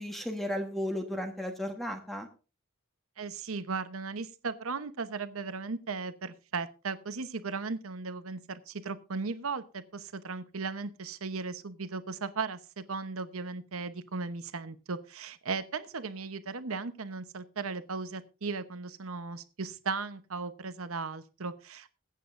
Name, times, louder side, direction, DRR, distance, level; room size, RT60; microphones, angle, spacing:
voice 1, 0.0-2.3, equal, ahead, 5 dB, 1.3 m, -34 dB
voice 2, 3.2-21.9, right 4 dB, 75° right, 12 dB, 0.9 m, -37 dB
21.5 x 8.5 x 2.6 m, 0.34 s
head